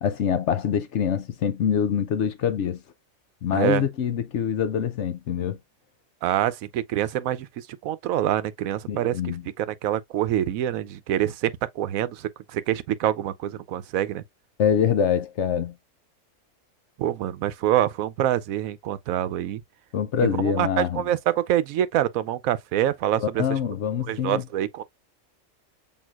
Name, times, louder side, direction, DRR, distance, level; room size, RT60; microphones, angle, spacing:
voice 1, 0.0-2.8 3.4-5.6 8.9-9.4 14.6-15.7 19.9-21.0 23.2-24.5, left 8 dB, 65° left, 0.9 m, -25 dB
voice 2, 6.2-14.2 17.0-19.6 20.2-23.4 24.1-24.8, right 12 dB, 85° right, 1.0 m, -26 dB
6.2 x 3.6 x 2.4 m
omnidirectional pair, 1.4 m